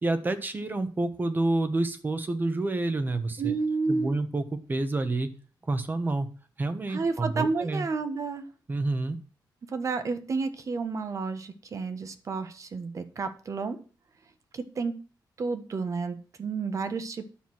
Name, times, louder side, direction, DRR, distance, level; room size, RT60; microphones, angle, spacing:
voice 1, 0.0-3.5 3.9-5.3 5.6-6.3 6.6-7.9 8.7-9.2, right 2 dB, 25° right, 9 dB, 1.3 m, -28 dB
voice 2, 3.4-4.2 6.9-8.4 9.6-13.8 14.5-15.0 15.4-17.3, right 4 dB, 45° right, 9 dB, 1.4 m, -31 dB
10.5 x 6.8 x 6.1 m, 0.38 s
wide cardioid pair, 140°, 8 cm